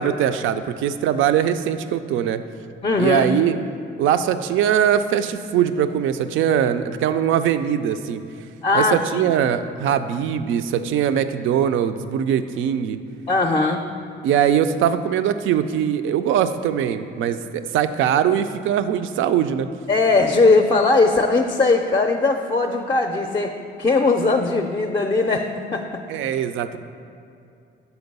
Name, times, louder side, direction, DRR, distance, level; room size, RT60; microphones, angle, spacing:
voice 1, 0.0-2.4 3.0-3.6 4.0-8.2 8.7-13.0 14.2-19.7 26.1-26.8, right 9 dB, 80° right, 10 dB, 0.4 m, -21 dB
voice 2, 2.8-3.2 8.6-9.0 13.3-13.9 19.9-26.0, left 3 dB, 25° left, 4 dB, 0.4 m, -19 dB
6.9 x 4.4 x 5.3 m, 2.5 s
cardioid pair, 90°, 20 cm